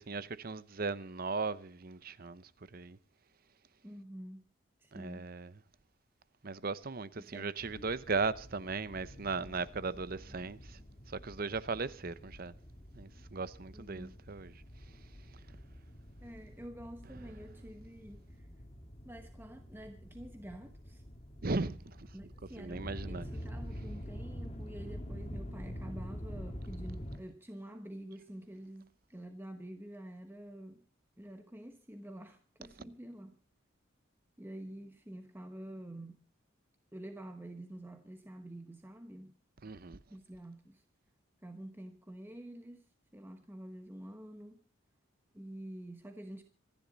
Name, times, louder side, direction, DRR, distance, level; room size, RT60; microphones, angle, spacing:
voice 1, 0.0-3.0 4.9-5.5 6.4-10.8 11.1-12.5 12.9-14.5 21.4-22.1 22.6-23.3 39.6-40.0, right 4 dB, 45° right, 0.8 m, -37 dB
voice 2, 3.8-4.4 4.8-5.3 7.2-7.5 13.7-14.2 16.2-18.5 19.0-21.0 22.1-30.9 31.2-33.4 34.4-36.2 36.9-39.3 40.1-40.8 41.4-42.8 43.1-44.6 45.3-46.4, right 1 dB, 10° right, 1.0 m, -48 dB
sound 1, 7.6-27.2, equal, 30° left, 2.1 m, -47 dB
sound 2, 7.7-11.8, left 1 dB, 70° left, 2.1 m, -58 dB
26.0 x 10.5 x 4.0 m
head